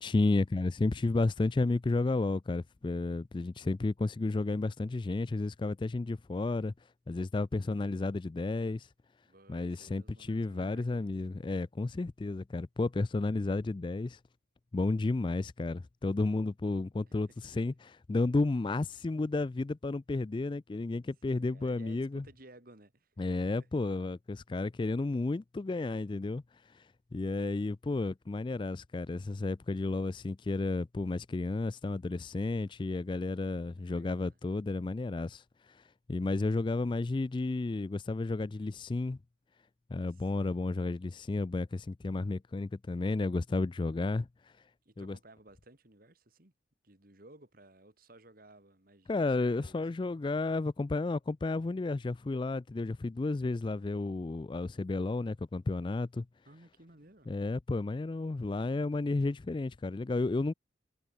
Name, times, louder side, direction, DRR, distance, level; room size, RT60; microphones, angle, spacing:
voice 1, 0.0-6.7 7.1-8.9 9.5-14.2 14.7-22.2 23.2-26.4 26.7-26.8 27.1-35.8 36.1-39.2 39.9-44.3 45.0-45.2 49.1-56.3 57.3-60.5, left 3 dB, 25° left, 0.3 m, -32 dB
voice 2, 9.2-11.1 17.1-17.2 21.2-23.7 33.8-34.4 39.9-40.5 44.8-46.5 46.8-49.8 56.4-57.4, right 1 dB, 45° right, 2.4 m, -58 dB
head